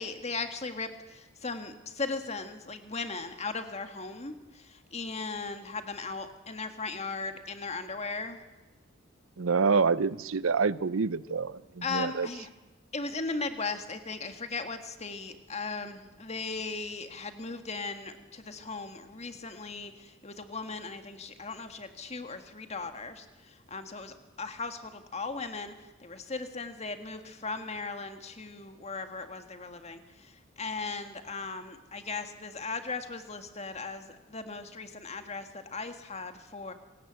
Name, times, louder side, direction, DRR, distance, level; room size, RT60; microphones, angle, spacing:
voice 1, 0.0-8.4 11.8-12.5 12.9-36.7, left 4 dB, 35° left, 8 dB, 1.7 m, -37 dB
voice 2, 9.4-12.3, right 5 dB, 85° right, 18 dB, 0.7 m, -27 dB
26.0 x 17.5 x 8.1 m, 1.1 s
head